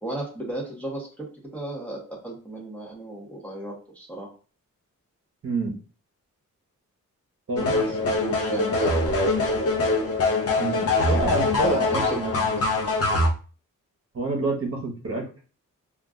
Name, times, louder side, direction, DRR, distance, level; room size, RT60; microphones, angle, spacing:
voice 1, 0.0-4.3 7.5-9.0 11.4-12.2 12.5-12.6, right 2 dB, 5° left, -3 dB, 0.7 m, -34 dB
voice 2, 5.4-5.7 7.5-8.2 10.6-12.5 14.1-15.2, right 2 dB, 45° right, -1 dB, 0.9 m, -28 dB
sound 1, 7.6-13.3, left 2 dB, 50° left, 0.7 m, -23 dB
2.4 x 2.2 x 3.5 m, 0.36 s
wide cardioid pair, 155°, 31 cm